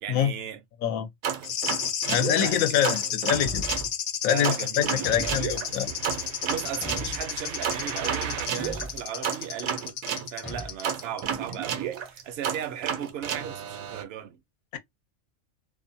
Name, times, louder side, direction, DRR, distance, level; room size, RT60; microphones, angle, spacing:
voice 1, 0.0-0.6 2.4-3.0 4.2-5.7 6.4-14.4, right 9 dB, 65° right, 0.6 m, -37 dB
sound 1, 1.2-3.9 4.4-10.3 10.8-14.0, right 8 dB, 85° right, 1.0 m, -32 dB
sound 2, 1.4-11.2 11.5-11.6, left 9 dB, 65° left, 0.6 m, -32 dB
voice 2, 2.1-3.6 4.2-5.9 14.7-14.8, left 10 dB, 85° left, 1.0 m, -25 dB
Thump thud, 3.3-3.9 5.0-5.6 6.8-7.4 8.6-9.0 10.4-10.8, right 1 dB, 15° left, 0.5 m, -37 dB
2.6 x 2.2 x 2.6 m
omnidirectional pair, 1.4 m